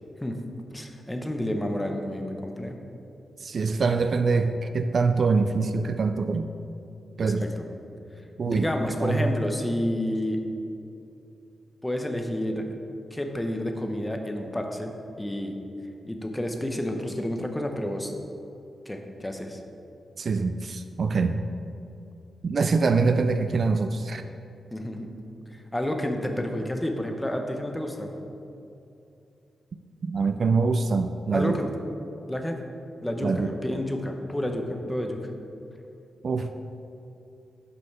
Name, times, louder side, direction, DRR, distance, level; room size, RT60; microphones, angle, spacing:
voice 1, 0.7-2.8 7.2-7.6 8.5-10.4 11.8-12.6 13.1-15.6 16.0-18.1 18.9-19.6 24.7-25.1 25.5-28.1 31.3-31.7 32.3-32.6 33.0-35.3, left 1 dB, 10° left, 4 dB, 0.8 m, -30 dB
voice 2, 3.4-6.5 7.2-7.5 8.4-8.7 9.0-9.3 20.2-21.5 22.4-24.2 30.0-31.6 33.2-33.5 36.2-36.5, right 4 dB, 55° right, 8 dB, 0.3 m, -24 dB
7.9 x 5.4 x 4.3 m, 2.7 s
cardioid pair, 90°, 0 cm